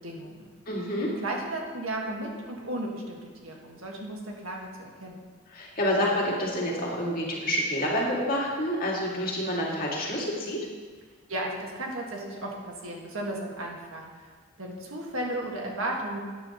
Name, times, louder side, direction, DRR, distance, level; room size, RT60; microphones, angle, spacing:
voice 1, 0.0-0.5 1.2-5.2 11.3-14.3 14.6-16.2, right 1 dB, 80° right, 0 dB, 1.8 m, -34 dB
voice 2, 0.7-1.1 5.5-10.6, equal, 45° left, -4 dB, 2.3 m, -28 dB
12.5 x 9.3 x 3.0 m, 1.5 s
head